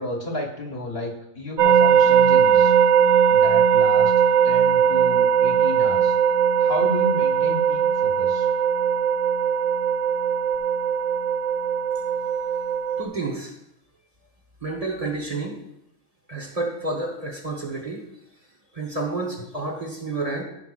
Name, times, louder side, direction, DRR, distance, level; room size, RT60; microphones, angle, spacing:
voice 1, 0.0-2.7 3.3-4.1 4.4-6.2 6.6-8.5 15.3-15.4, left 1 dB, 55° left, 1 dB, 1.5 m, -32 dB
sound 1, 1.6-13.0, right 7 dB, 75° right, 1.0 m, -19 dB
voice 2, 13.0-13.5 14.6-15.6 16.3-18.1 18.7-20.4, right 3 dB, 30° right, 0 dB, 1.2 m, -30 dB
15.0 x 5.8 x 2.5 m, 0.81 s
omnidirectional pair, 1.3 m